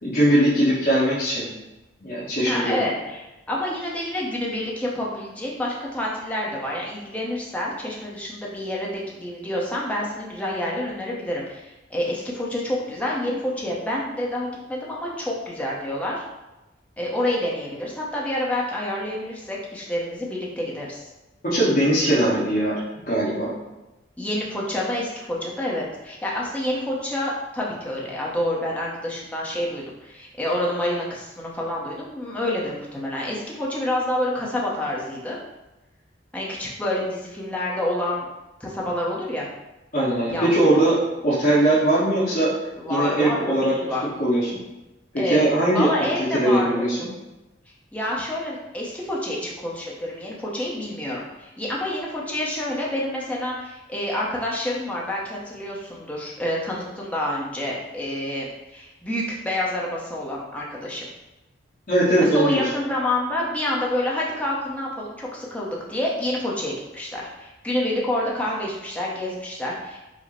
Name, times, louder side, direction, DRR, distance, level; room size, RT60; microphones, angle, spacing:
voice 1, 0.0-1.5 2.0-2.8 21.4-22.8 23.1-23.5 39.9-41.0 41.2-42.5 42.9-43.7 44.2-44.6 45.2-45.9 46.2-47.1 61.9-62.6, right 1 dB, 50° left, -9 dB, 1.2 m, -20 dB
voice 2, 2.5-16.2 17.0-21.1 24.2-35.4 36.3-38.2 38.6-39.5 40.3-40.5 42.8-43.4 43.7-44.0 45.2-45.5 45.7-46.9 47.9-58.5 58.7-61.1 62.2-70.0, left 1 dB, 10° left, -4 dB, 0.7 m, -28 dB
5.0 x 2.1 x 4.2 m, 1.0 s
head